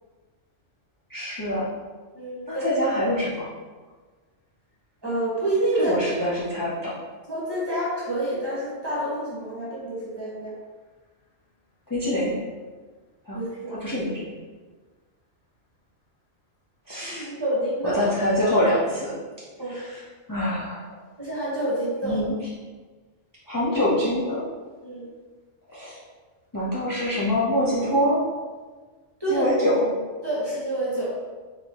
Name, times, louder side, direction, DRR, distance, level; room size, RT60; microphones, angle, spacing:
voice 1, 1.1-1.7 2.5-3.5 5.7-6.9 11.9-12.4 13.3-13.4 13.7-14.3 16.9-17.3 17.8-19.1 19.7-20.0 20.3-21.0 22.0-22.3 23.5-24.4 25.7-26.0 26.5-28.2 29.3-29.9, equal, 20° left, -9 dB, 0.6 m, -25 dB
voice 2, 2.1-2.6 5.0-5.9 7.3-10.5 13.3-13.7 17.1-18.0 19.6-19.8 21.2-22.2 24.8-25.1 29.2-29.5 30.2-31.2, right 1 dB, 20° right, -7 dB, 1.3 m, -28 dB
4.3 x 3.4 x 2.9 m, 1.4 s
omnidirectional pair, 1.3 m